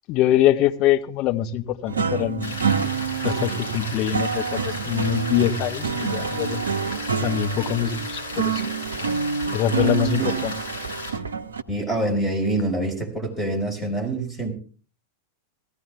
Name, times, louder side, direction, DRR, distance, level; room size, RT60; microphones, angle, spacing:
voice 1, 0.1-2.5 3.2-6.6 7.2-8.7 9.5-10.5, left 11 dB, 40° left, 1.1 m, -23 dB
sound 1, 1.9-11.6, right 6 dB, 70° right, 0.8 m, -27 dB
Rain, 2.4-11.1, left 2 dB, 60° left, 8.0 m, -35 dB
voice 2, 11.7-14.5, right 1 dB, 10° left, 5.0 m, -25 dB
17.0 x 15.0 x 3.5 m
figure-of-eight pair, 90°, 0 cm